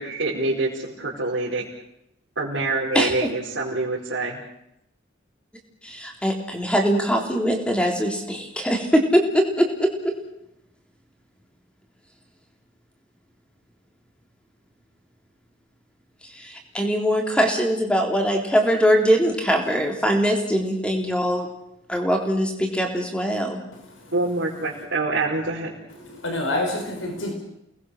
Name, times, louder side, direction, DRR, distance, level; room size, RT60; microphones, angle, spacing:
voice 1, 0.0-1.6 2.3-4.4 24.1-25.7, right 2 dB, 70° right, -8 dB, 4.9 m, -26 dB
voice 2, 5.8-10.1 16.3-21.5 21.9-23.6, equal, 5° left, 2 dB, 3.7 m, -22 dB
voice 3, 23.7-24.1 25.9-27.3, left 1 dB, 85° left, 3 dB, 5.3 m, -28 dB
29.0 x 20.0 x 6.6 m, 0.82 s
head